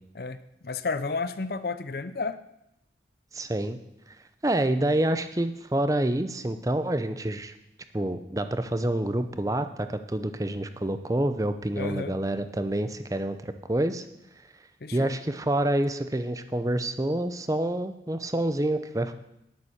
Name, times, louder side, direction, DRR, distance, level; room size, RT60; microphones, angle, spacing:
voice 1, 0.6-2.4 11.7-12.1 14.8-15.1, left 4 dB, 55° left, 13 dB, 0.6 m, -31 dB
voice 2, 3.3-3.8 4.1-4.2 4.4-7.5 7.9-14.0 14.9-19.1, right 1 dB, 20° right, 10 dB, 0.6 m, -27 dB
10.0 x 8.9 x 6.4 m, 0.84 s
head